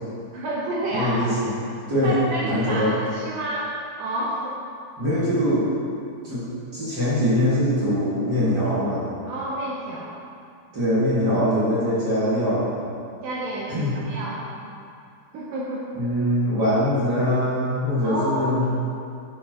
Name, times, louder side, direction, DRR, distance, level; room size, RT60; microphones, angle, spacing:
voice 1, 0.3-1.3 2.0-3.7 4.0-4.6 9.3-10.1 13.2-14.4 15.3-15.8 18.0-18.5, right 1 dB, 75° right, -5 dB, 2.0 m, -29 dB
voice 2, 0.9-1.5 1.9-2.1 2.4-2.9 5.0-5.7 6.2-6.4 6.7-9.0 10.7-12.8 13.7-13.9 15.9-18.6, equal, 45° right, -11 dB, 1.4 m, -22 dB
8.9 x 7.5 x 2.9 m, 2.4 s
omnidirectional pair, 4.8 m